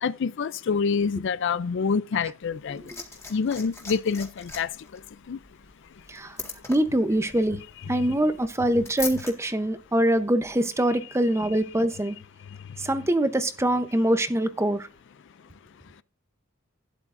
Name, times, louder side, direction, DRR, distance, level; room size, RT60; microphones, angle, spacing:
voice 1, 0.0-2.8 3.3-4.7 5.3-5.4 8.0-8.1, left 5 dB, 60° left, 0.4 m, -26 dB
Liquid, 2.4-9.3 10.4-10.5, left 3 dB, 15° left, 1.9 m, -40 dB
voice 2, 6.7-7.6 7.9-12.2 12.8-14.9, right 1 dB, 15° right, 0.8 m, -24 dB
12.0 x 9.9 x 2.6 m
head